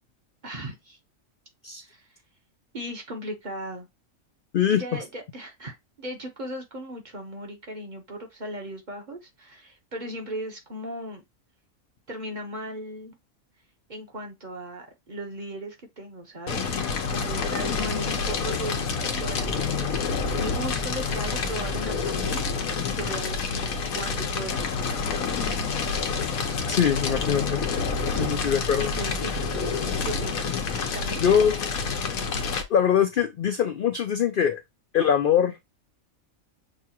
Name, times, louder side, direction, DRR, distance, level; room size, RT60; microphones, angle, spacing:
voice 1, 0.4-1.0 1.8-2.1 2.7-3.9 4.7-11.2 12.1-13.1 13.9-16.6 17.1-19.9 20.2-25.0 28.1-28.4 28.8-29.7 30.0-30.6 30.9-31.2, right 1 dB, 40° right, 0.9 m, -37 dB
Fire, 16.5-32.6, left 5 dB, 90° left, 1.2 m, -28 dB
voice 2, 26.7-27.6 28.2-28.9 31.2-31.7 32.7-34.6 34.9-35.6, left 8 dB, 70° left, 0.5 m, -23 dB
6.3 x 2.4 x 2.9 m
omnidirectional pair, 1.4 m